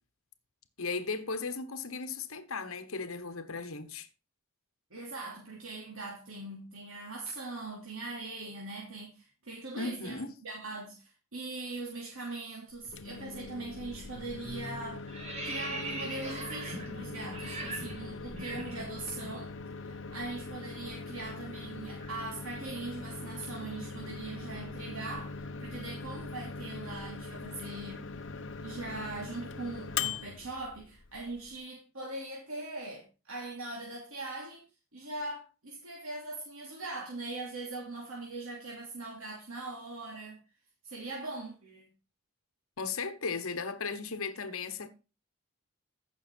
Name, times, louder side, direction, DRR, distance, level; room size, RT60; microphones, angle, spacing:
voice 1, 0.8-4.1 9.8-10.3 42.8-44.9, left 4 dB, 75° left, 1.2 m, -36 dB
voice 2, 4.9-15.0 15.4-19.5 19.8-28.1 28.6-34.6 34.9-40.4 40.8-41.8, right 2 dB, 80° right, 2.8 m, -41 dB
Microwave oven, 12.7-31.6, left 4 dB, 55° left, 1.0 m, -41 dB
sound 1, 13.8-14.1 14.4-19.4 19.6-19.8 20.1-24.2, right 2 dB, 30° right, 2.5 m, -43 dB
15.0 x 6.3 x 4.5 m
head